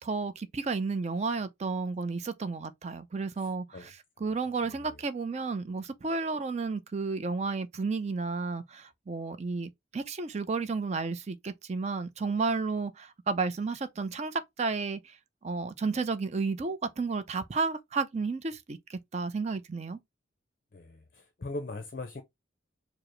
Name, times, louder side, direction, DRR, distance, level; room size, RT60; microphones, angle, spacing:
voice 1, 0.0-15.2 15.4-20.0, right 4 dB, 35° right, 0.4 m, -32 dB
voice 2, 3.4-3.9 4.2-4.3 4.6-4.9 20.7-22.2, left 2 dB, 45° left, 0.5 m, -41 dB
4.8 x 2.0 x 3.0 m
head